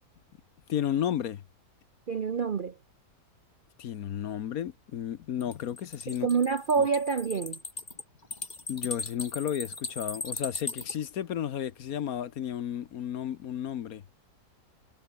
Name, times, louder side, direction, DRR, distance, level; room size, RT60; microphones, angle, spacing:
voice 1, 0.7-1.4 3.8-6.3 6.8-6.9 8.7-14.0, left 10 dB, 60° left, 1.2 m, -33 dB
voice 2, 2.1-2.8 6.2-7.6, right 5 dB, 50° right, 0.6 m, -27 dB
sound 1, 5.4-10.9, left 3 dB, 25° left, 2.0 m, -38 dB
omnidirectional pair, 1.8 m